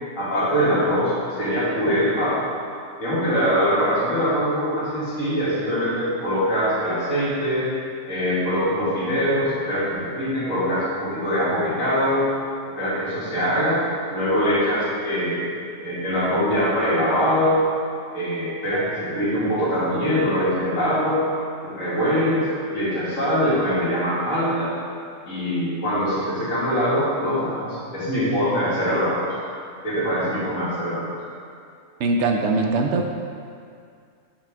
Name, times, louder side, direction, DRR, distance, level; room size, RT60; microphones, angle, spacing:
voice 1, 0.2-2.5 3.0-7.7 8.1-12.3 12.8-13.8 14.1-15.5 15.8-17.6 18.1-21.3 21.6-24.7 25.3-29.3 29.8-31.1, equal, 75° left, -9 dB, 2.4 m, -23 dB
voice 2, 32.0-33.1, right 3 dB, 70° right, 3 dB, 0.8 m, -21 dB
8.4 x 4.9 x 3.5 m, 2.3 s
omnidirectional pair, 1.4 m